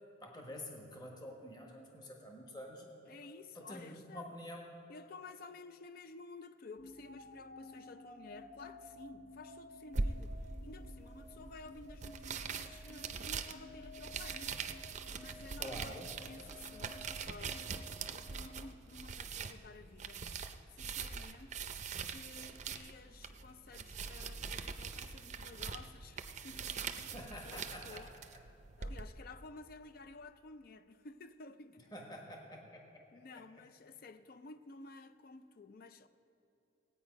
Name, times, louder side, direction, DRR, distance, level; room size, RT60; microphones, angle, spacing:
voice 1, 0.2-2.9 3.5-4.7 15.6-16.1 27.0-28.0 31.9-32.8, left 1 dB, 20° left, 1.3 m, -48 dB
voice 2, 3.1-4.3 4.9-14.7 15.1-16.0 16.3-20.3 20.7-21.6 22.0-28.1 28.8-31.8 33.1-36.1, left 3 dB, 50° left, 0.4 m, -53 dB
sound 1, 6.8-18.9, left 2 dB, 70° left, 1.1 m, -54 dB
sound 2, 9.9-29.0, right 5 dB, 35° right, 0.5 m, -43 dB
17.5 x 8.8 x 5.2 m
head